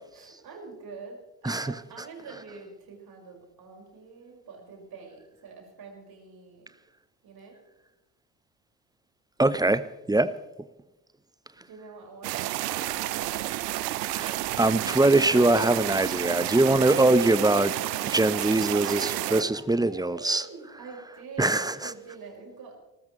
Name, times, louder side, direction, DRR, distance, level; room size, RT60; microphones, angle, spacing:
voice 1, 0.1-6.7 7.2-7.6 11.6-13.3 18.8-22.8, right 4 dB, 50° right, 5.6 m, -45 dB
voice 2, 1.4-1.7 9.4-10.3 14.1-17.8 18.0-20.5 21.4-21.9, right 2 dB, 10° right, 0.8 m, -23 dB
sound 1, 12.2-19.4, right 15 dB, 80° right, 0.7 m, -30 dB
29.0 x 13.5 x 3.2 m
hypercardioid pair, 55°, 48 cm